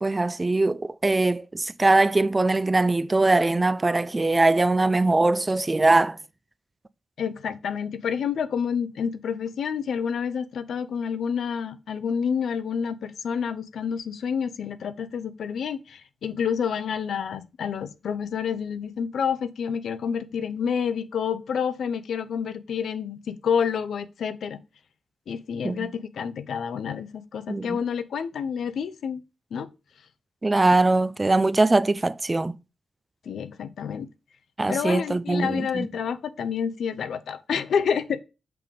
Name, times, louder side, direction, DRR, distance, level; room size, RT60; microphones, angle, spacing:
voice 1, 0.0-6.2 25.6-25.9 27.5-27.8 30.4-32.6 34.6-35.9, right 2 dB, 25° right, 0.3 m, -21 dB
voice 2, 7.2-24.6 25.3-29.2 29.5-29.7 33.2-34.1 34.7-38.2, left 7 dB, 80° left, 0.5 m, -29 dB
5.9 x 3.4 x 5.2 m
cardioid pair, 85°, 0 cm